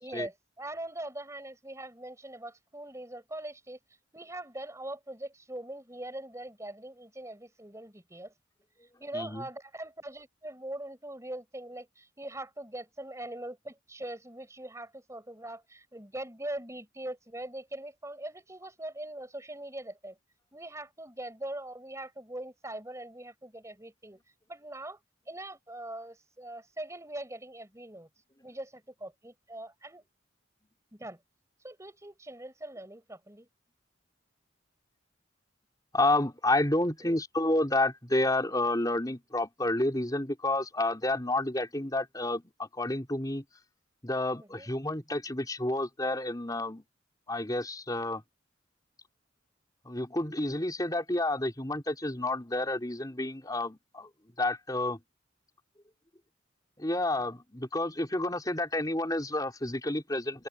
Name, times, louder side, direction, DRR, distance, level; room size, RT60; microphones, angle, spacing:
voice 1, 0.0-3.8 4.1-8.3 9.0-20.2 20.5-24.2 24.5-25.0 25.3-28.1 28.4-30.0 30.9-31.2 31.6-33.5 37.0-37.2 44.4-44.7, right 1 dB, 15° right, 4.2 m, -42 dB
voice 2, 35.9-43.4 44.0-46.8 47.3-48.2 49.8-54.1 54.4-55.0 56.8-60.5, left 2 dB, 20° left, 4.0 m, -30 dB
open air
head